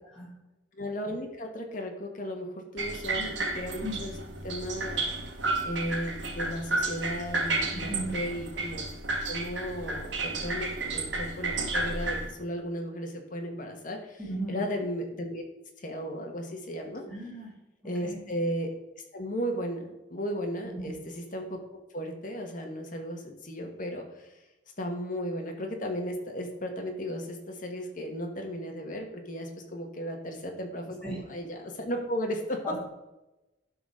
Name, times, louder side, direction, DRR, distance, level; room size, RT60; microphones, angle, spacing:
voice 1, 0.7-4.1 4.4-5.0 5.6-8.9 9.3-14.2 14.5-15.4 15.8-17.0 17.8-18.7 19.1-21.6 21.9-24.4 24.8-32.6, equal, 45° left, 3 dB, 1.5 m, -35 dB
sound 1, 2.8-12.3, right 3 dB, 80° right, 1.5 m, -32 dB
voice 2, 7.7-8.1 14.2-14.6 17.1-17.5 18.0-18.2 20.7-20.9 31.0-31.2 32.6-32.8, right 1 dB, 5° left, -6 dB, 3.4 m, -36 dB
11.5 x 4.1 x 5.0 m, 0.99 s
head